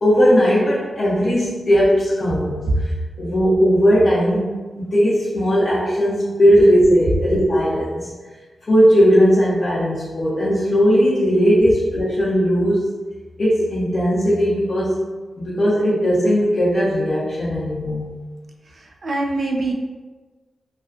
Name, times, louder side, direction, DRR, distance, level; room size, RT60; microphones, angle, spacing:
voice 1, 0.0-2.9 3.2-8.1 8.7-12.9 13.4-15.0 15.4-18.1, equal, 50° left, -10 dB, 0.6 m, -17 dB
voice 2, 18.6-19.7, right 2 dB, 50° right, 0 dB, 0.4 m, -23 dB
2.4 x 2.3 x 2.4 m, 1.3 s
cardioid pair, 80°, 0 cm